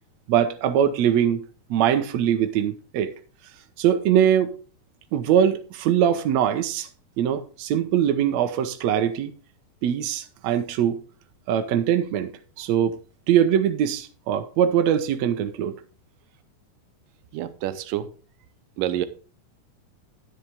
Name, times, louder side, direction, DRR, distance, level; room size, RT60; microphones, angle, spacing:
voice 1, 0.3-1.4 1.7-3.1 3.8-4.5 5.1-6.9 7.2-9.3 9.8-11.0 11.5-12.3 12.6-13.0 13.3-15.8, right 9 dB, 65° right, 2.0 m, -22 dB
voice 2, 17.3-18.1 18.8-19.1, right 12 dB, 85° right, 2.4 m, -27 dB
10.0 x 10.0 x 3.5 m
omnidirectional pair, 3.7 m